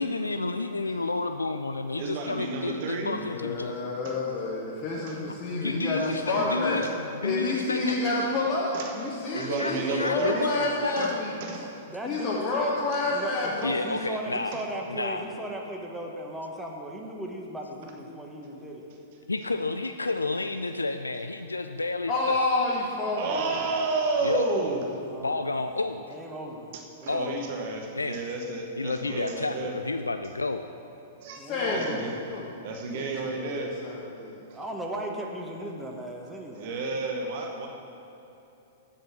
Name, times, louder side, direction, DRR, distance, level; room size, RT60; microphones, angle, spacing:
voice 1, 0.0-3.7 5.5-6.9 7.1-8.0 9.3-11.2 13.6-14.6 14.9-15.2 19.3-22.4 24.2-24.5 25.2-26.0 27.1-27.4 27.9-28.2 28.8-30.7, left 3 dB, 85° left, 8 dB, 0.3 m, -30 dB
voice 2, 2.0-3.2 4.0-4.1 4.9-5.3 6.0-6.9 7.8-7.9 8.7-8.9 9.3-10.6 11.0-11.1 11.4-11.7 14.5-14.6 23.2-24.8 27.0-29.7 31.2-31.4 31.7-32.1 32.6-33.7 36.5-37.7, right 3 dB, 50° right, 3 dB, 1.1 m, -31 dB
voice 3, 3.2-6.8 7.2-11.3 12.0-13.7 22.1-23.5 29.1-29.2 31.3-32.5 32.9-34.4, left 3 dB, 35° left, -6 dB, 1.4 m, -29 dB
voice 4, 11.8-12.7 13.1-18.9 25.1-25.4 26.1-26.7 27.0-27.4 31.4-32.1 34.5-36.8, right 1 dB, 10° right, 0 dB, 1.2 m, -37 dB
7.2 x 7.2 x 7.2 m, 2.9 s
figure-of-eight pair, 105°, 0 cm